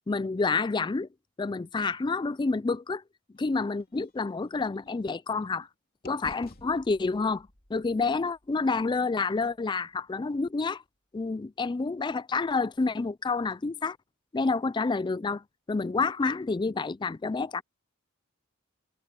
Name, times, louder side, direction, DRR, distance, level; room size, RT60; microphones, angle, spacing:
voice 1, 0.1-1.1 1.4-3.0 3.4-5.7 6.0-10.8 11.1-14.0 14.3-17.6, left 4 dB, 20° left, 0.3 m, -29 dB
sound 1, 3.3-5.7 6.0-10.0, left 1 dB, 45° left, 3.1 m, -54 dB
head